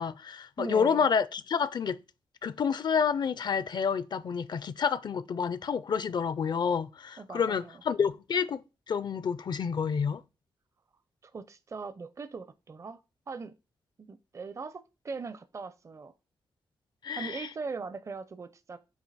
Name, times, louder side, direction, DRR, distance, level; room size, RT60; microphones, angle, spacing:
voice 1, 0.0-2.0 2.4-10.2 17.0-17.5, left 6 dB, 55° left, 0.5 m, -29 dB
voice 2, 0.6-1.1 7.2-7.8 11.2-13.0 13.3-13.5 14.1-16.1 17.1-18.8, right 4 dB, 35° right, 0.5 m, -40 dB
8.1 x 2.8 x 4.1 m
cardioid pair, 85°, 9 cm